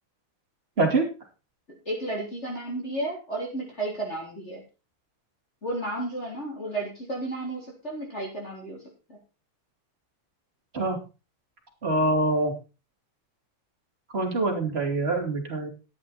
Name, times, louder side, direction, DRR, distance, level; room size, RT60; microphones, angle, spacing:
voice 1, 1.9-4.6 5.6-8.8 9.1-9.2, right 2 dB, 30° left, -2 dB, 4.0 m, -32 dB
voice 2, 11.8-12.5 14.1-15.7, right 2 dB, 25° right, 1 dB, 3.5 m, -24 dB
13.5 x 9.8 x 4.3 m, 0.31 s
omnidirectional pair, 2.4 m